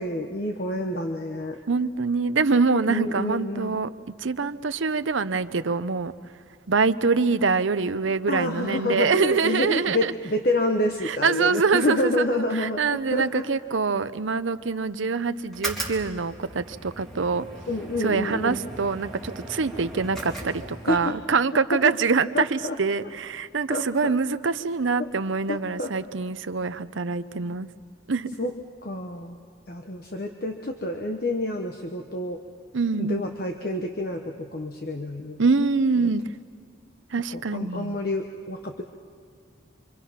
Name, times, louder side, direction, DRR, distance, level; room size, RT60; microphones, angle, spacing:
voice 1, 0.0-1.6 2.9-3.8 8.3-13.5 17.7-18.6 20.9-21.1 21.7-21.9 22.3-22.8 23.0-23.1 23.7-24.2 25.0-25.1 25.5-25.9 28.4-28.5 28.8-29.4 29.7-32.4 33.0-35.4 36.0-36.1 37.3-38.8, left 1 dB, 50° left, 3 dB, 1.1 m, -28 dB
voice 2, 1.7-3.9 4.2-6.1 6.7-10.1 11.0-17.4 18.0-27.7 28.1-28.3 32.7-33.2 35.4-36.2 37.1-38.0, right 4 dB, 85° right, 12 dB, 0.8 m, -25 dB
sound 1, 15.5-21.1, right 2 dB, ahead, 3.1 m, -38 dB
26.5 x 26.0 x 5.8 m, 2.3 s
head